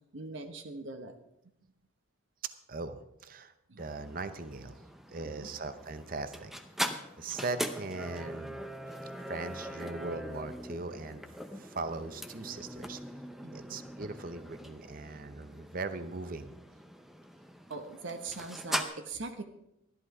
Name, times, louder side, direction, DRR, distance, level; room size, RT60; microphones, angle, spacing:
voice 1, 0.1-1.1 3.7-3.8 5.2-5.5 13.4-13.8 17.7-19.4, right 3 dB, 65° right, 7 dB, 1.1 m, -41 dB
voice 2, 2.7-4.8 5.1-6.5 7.2-8.6 9.3-11.2 11.5-13.0 13.5-16.6, right 3 dB, 45° right, 11 dB, 0.7 m, -39 dB
sound 1, 3.8-18.8, equal, ahead, 0.6 m, -41 dB
13.0 x 11.0 x 4.8 m, 0.85 s
head